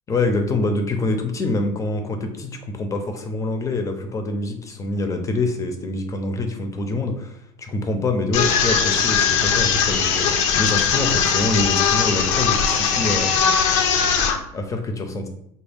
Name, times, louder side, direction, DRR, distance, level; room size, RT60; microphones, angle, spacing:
voice 1, 0.1-13.3 14.5-15.3, left 2 dB, 20° left, 6 dB, 0.5 m, -25 dB
sound 1, 8.3-14.4, left 7 dB, 80° left, 0.5 m, -20 dB
3.4 x 2.1 x 3.5 m, 0.76 s
supercardioid pair, 130°, 16 cm